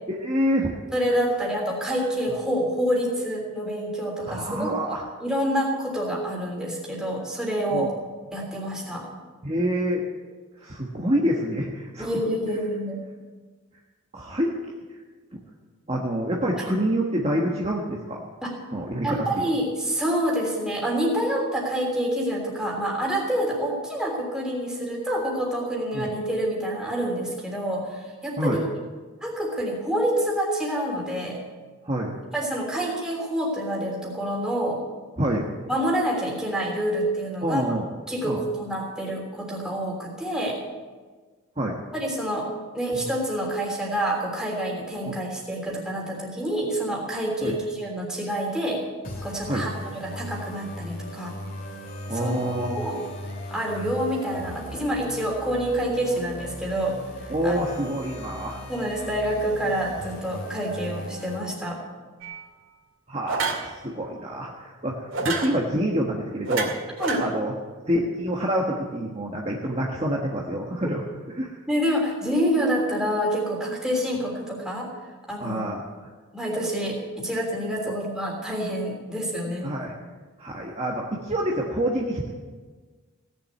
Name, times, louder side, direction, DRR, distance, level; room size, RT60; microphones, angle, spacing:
voice 1, 0.2-0.7 4.2-5.0 7.7-7.9 9.4-10.0 10.6-12.1 14.1-14.5 15.3-15.4 15.9-18.2 18.7-19.2 25.9-26.1 28.4-28.6 31.8-32.2 35.2-35.5 37.4-37.8 38.2-38.4 41.6-41.8 42.9-43.1 45.0-45.1 47.4-47.5 49.5-49.7 52.1-52.8 57.3-58.6 63.1-66.7 67.2-67.5 67.9-71.0 71.4-71.6 75.4-75.8 77.9-78.0 79.6-79.9 80.4-82.3, equal, 30° right, -2 dB, 1.4 m, -27 dB
voice 2, 0.9-4.7 5.2-7.9 8.3-9.0 12.0-13.0 18.4-18.5 19.0-28.6 29.2-31.4 32.3-34.8 35.7-37.6 38.1-40.6 41.9-42.5 42.7-48.8 49.2-51.3 52.1-52.3 52.6-53.0 53.5-57.0 57.4-57.6 58.7-61.8 67.0-67.2 71.7-74.9 75.3-75.6 76.3-79.7, equal, 5° right, -2 dB, 3.3 m, -27 dB
sound 1, 49.0-61.4, equal, 40° left, 2.9 m, -38 dB
sound 2, 62.2-62.5 63.3-63.7 65.1-65.5 66.5-67.2, right 4 dB, 55° right, 2.7 m, -27 dB
17.5 x 7.3 x 9.5 m, 1.4 s
head